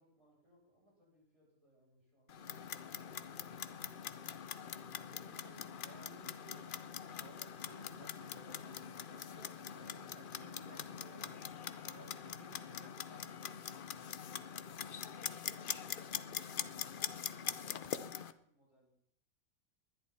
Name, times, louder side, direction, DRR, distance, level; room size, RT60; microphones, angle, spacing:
voice 1, 0.0-3.8 14.8-18.9, equal, 20° right, -5 dB, 8.1 m, -72 dB
Clock, 2.3-18.3, left 8 dB, 50° left, 0.7 m, -43 dB
voice 2, 5.1-6.7 7.2-11.4 11.8-13.3, right 5 dB, 75° right, 9 dB, 1.7 m, -60 dB
20.0 x 11.5 x 4.2 m, 0.68 s
omnidirectional pair, 1.5 m